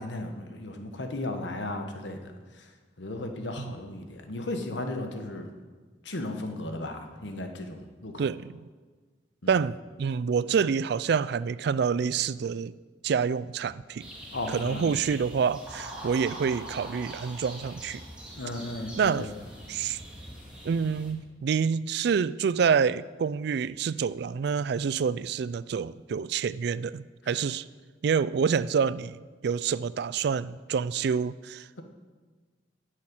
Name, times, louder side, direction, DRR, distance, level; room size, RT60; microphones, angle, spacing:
voice 1, 0.0-2.7 3.0-5.5 6.0-8.2 9.4-9.6 14.3-14.9 18.4-19.3, left 2 dB, 85° left, 5 dB, 1.3 m, -35 dB
voice 2, 8.2-8.6 9.5-12.7 13.0-14.1 14.5-18.0 19.0-19.3 19.7-20.0 20.6-27.7 28.0-29.2 29.4-31.8, right 6 dB, 65° right, 17 dB, 0.3 m, -27 dB
sound 1, 14.0-21.1, right 1 dB, 5° right, 2.2 m, -43 dB
9.7 x 6.5 x 8.9 m, 1.4 s
head